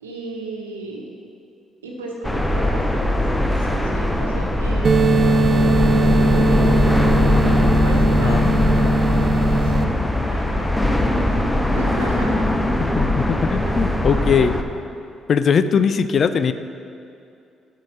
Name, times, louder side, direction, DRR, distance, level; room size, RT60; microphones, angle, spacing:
voice 1, 0.0-1.0 1.8-7.1 7.7-12.4 13.3-14.5, right 2 dB, 90° right, -1 dB, 1.0 m, -36 dB
sound 1, 2.2-14.6, left 1 dB, 10° left, 0.8 m, -20 dB
sound 2, 4.8-9.8, right 1 dB, 45° right, 0.5 m, -18 dB
voice 2, 8.2-8.5 12.9-14.6 15.3-16.5, left 6 dB, 50° left, 12 dB, 0.4 m, -20 dB
11.0 x 4.9 x 5.6 m, 2.5 s
hypercardioid pair, 45°, 0 cm